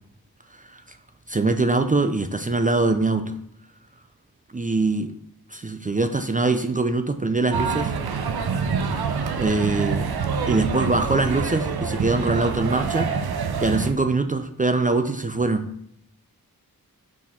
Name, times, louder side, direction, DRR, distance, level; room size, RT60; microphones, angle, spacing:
voice 1, 1.3-3.4 4.5-5.1 5.5-7.9 9.4-10.1 10.5-13.1 13.6-15.7, right 3 dB, 25° right, 7 dB, 0.4 m, -23 dB
sound 1, 7.5-13.9, right 5 dB, 90° right, 0.6 m, -26 dB
6.1 x 3.7 x 4.3 m, 0.71 s
wide cardioid pair, 55°, 36 cm